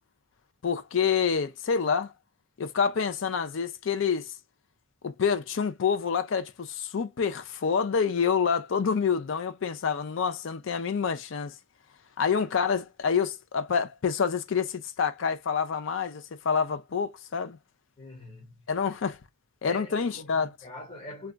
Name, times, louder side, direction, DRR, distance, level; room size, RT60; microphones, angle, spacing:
voice 1, 0.6-2.1 2.6-4.3 5.0-11.5 12.2-17.6 18.7-19.2 19.6-20.5, left 6 dB, 65° left, 0.4 m, -27 dB
voice 2, 18.0-18.7 19.6-21.3, left 2 dB, 25° left, 1.1 m, -43 dB
2.3 x 2.3 x 3.7 m
head